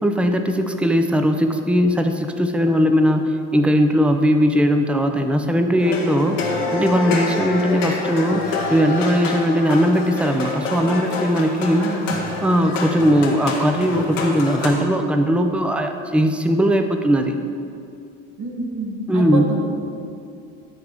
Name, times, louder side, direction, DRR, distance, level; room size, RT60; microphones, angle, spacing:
voice 1, 0.0-6.4 6.7-11.8 12.4-17.4 19.1-19.5, equal, 5° right, 6 dB, 0.6 m, -19 dB
sound 1, 5.8-14.7, left 3 dB, 80° left, 1.2 m, -27 dB
voice 2, 11.8-12.5 18.4-19.7, right 2 dB, 50° right, 2 dB, 1.4 m, -28 dB
9.8 x 4.6 x 5.0 m, 2.6 s
hypercardioid pair, 65°, 37 cm